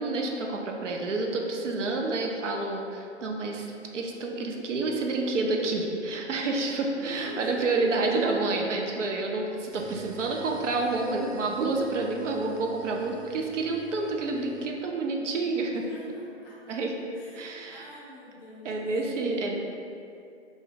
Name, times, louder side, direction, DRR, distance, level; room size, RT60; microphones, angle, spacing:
voice 1, 0.0-15.9 16.7-16.9 17.3-17.8 18.6-19.6, right 3 dB, 90° right, 1 dB, 0.5 m, -29 dB
voice 2, 6.9-8.3 9.7-9.9 14.9-15.5 15.8-16.8 17.1-19.5, left 1 dB, 20° left, -8 dB, 0.5 m, -47 dB
sound 1, 9.7-14.7, right 1 dB, 60° right, 0.9 m, -50 dB
2.5 x 2.2 x 3.8 m, 2.7 s
hypercardioid pair, 135°, 36 cm